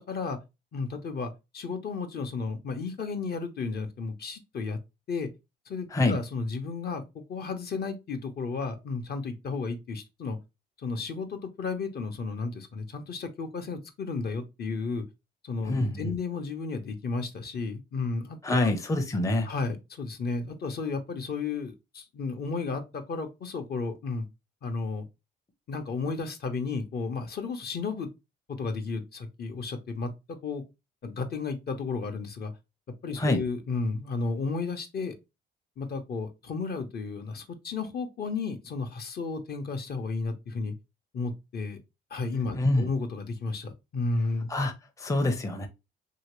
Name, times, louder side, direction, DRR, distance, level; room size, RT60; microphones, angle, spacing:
voice 1, 0.1-0.4 0.7-4.8 5.1-5.3 5.7-7.0 7.3-10.4 10.8-15.0 15.4-18.7 19.5-24.3 24.6-25.1 25.7-28.1 28.5-30.6 31.0-32.5 33.0-35.2 35.8-40.7 41.1-41.8 42.1-44.5, left 4 dB, 55° left, 0.7 m, -33 dB
voice 2, 15.6-16.1 18.4-19.5 33.2-33.4 42.5-42.9 44.5-45.7, left 2 dB, 15° left, 0.6 m, -26 dB
2.9 x 2.7 x 3.0 m
cardioid pair, 90°, 20 cm